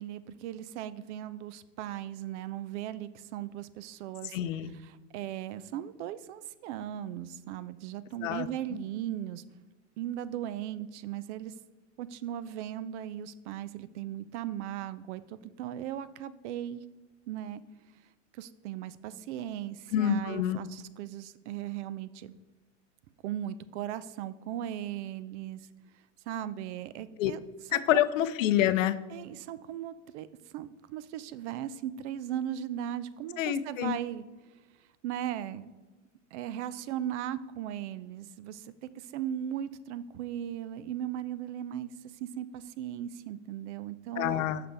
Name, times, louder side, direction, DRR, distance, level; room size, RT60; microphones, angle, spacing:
voice 1, 0.0-4.4 4.7-9.4 10.0-11.5 12.0-16.8 17.3-17.6 18.3-22.3 23.2-25.6 26.3-27.4 27.7-28.0 29.1-34.2 35.0-35.7 36.3-44.4, right 11 dB, 65° right, 16 dB, 0.5 m, -37 dB
voice 2, 4.3-4.7 8.2-8.5 19.9-20.6 27.2-27.3 27.7-28.9 33.4-34.0 44.2-44.6, left 11 dB, 90° left, 14 dB, 0.6 m, -27 dB
6.8 x 5.7 x 3.3 m, 1.3 s
supercardioid pair, 130°, 37 cm